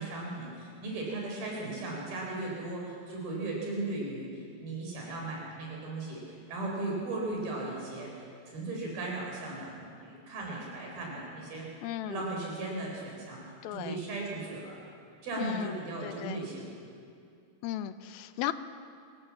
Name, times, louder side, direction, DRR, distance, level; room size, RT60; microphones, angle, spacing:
voice 1, 0.0-11.6 12.0-13.4 13.7-14.8 15.2-16.7, right 2 dB, 80° right, -2 dB, 6.0 m, -37 dB
voice 2, 11.8-12.2 13.6-14.0 15.4-16.4 17.6-18.5, left 12 dB, 90° left, 11 dB, 2.5 m, -36 dB
25.0 x 15.0 x 7.4 m, 2.4 s
omnidirectional pair, 4.2 m